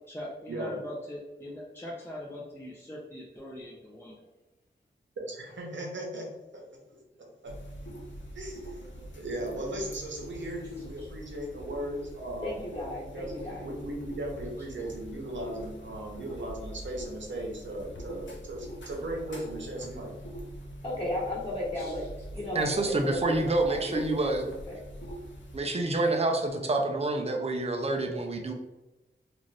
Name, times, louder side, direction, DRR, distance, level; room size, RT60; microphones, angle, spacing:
voice 1, 0.1-4.2 11.0-11.1 21.7-21.9, left 1 dB, 10° left, -5 dB, 0.5 m, -41 dB
voice 2, 5.2-7.0 7.4-7.5 8.3-8.8 9.1-12.6 13.1-13.3 13.6-20.1, right 1 dB, 75° right, 0 dB, 0.8 m, -37 dB
sound 1, 7.5-25.6, equal, 75° left, 0.6 m, -44 dB
voice 3, 12.4-13.7 20.8-22.1 22.3-24.8, left 1 dB, 25° left, -7 dB, 1.2 m, -35 dB
voice 4, 22.5-24.4 25.5-28.5, right 2 dB, 35° right, 3 dB, 0.5 m, -27 dB
2.6 x 2.5 x 3.2 m, 1.1 s
wide cardioid pair, 65°, 19 cm